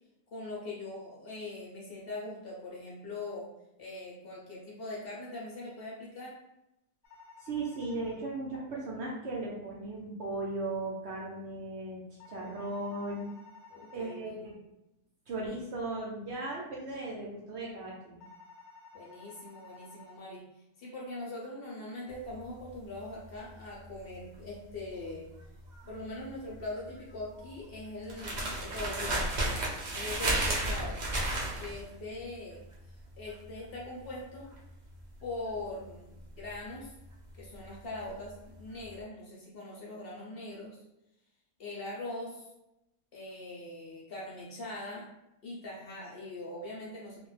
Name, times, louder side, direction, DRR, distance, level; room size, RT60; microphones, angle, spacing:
voice 1, 0.3-3.5 3.8-6.4 13.7-14.5 18.9-20.5 20.8-25.3 25.8-29.3 29.9-31.0 31.6-32.6 33.2-34.5 35.2-36.9 37.3-40.8 41.6-42.5 43.1-45.1 45.4-47.3, left 2 dB, 55° left, -4 dB, 0.7 m, -42 dB
sound 1, 7.0-8.2 12.2-14.2 18.2-20.2, left 4 dB, 80° left, 1.0 m, -53 dB
voice 2, 7.4-12.0 12.3-13.3 13.9-14.6 15.3-18.2, right 2 dB, 60° right, -4 dB, 0.8 m, -37 dB
sound 2, 22.1-38.3 38.6-38.9, right 2 dB, 75° right, 0.4 m, -34 dB
2.4 x 2.1 x 3.1 m, 0.89 s
omnidirectional pair, 1.5 m